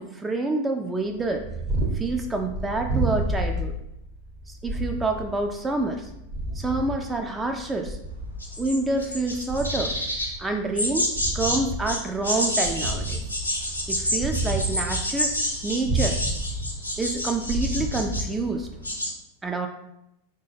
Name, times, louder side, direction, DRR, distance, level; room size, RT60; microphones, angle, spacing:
voice 1, 0.0-1.4 2.0-3.7 4.5-6.0 6.6-8.0 8.6-9.9 10.4-13.2 13.9-15.3 15.6-16.2 17.0-18.7 19.4-19.7, right 2 dB, 10° right, 4 dB, 0.3 m, -27 dB
Purr, 1.2-18.9, right 2 dB, 35° right, 0.7 m, -31 dB
sound 1, 8.4-10.3 10.8-11.6 11.9-18.4 18.7-19.1, left 1 dB, 85° left, 0.7 m, -28 dB
3.8 x 2.2 x 3.2 m, 0.81 s
figure-of-eight pair, 90°, 0 cm